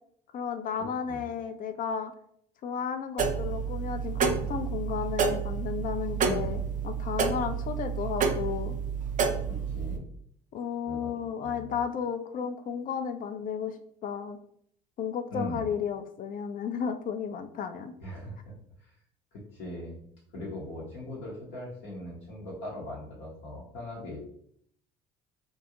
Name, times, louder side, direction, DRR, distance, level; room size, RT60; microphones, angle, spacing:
voice 1, 0.3-2.1 2.6-8.8 10.5-13.8 14.0-14.4 15.0-17.9, left 7 dB, 45° left, 9 dB, 0.4 m, -33 dB
sound 1, 3.2-10.0, right 6 dB, 40° right, 0.4 m, -29 dB
voice 2, 9.5-10.0 10.8-11.1 11.4-11.8 15.3-15.7 18.0-18.9 19.3-20.0 20.3-24.3, left 1 dB, 70° left, -4 dB, 0.8 m, -40 dB
2.5 x 2.2 x 2.8 m, 0.66 s
hypercardioid pair, 60°, 21 cm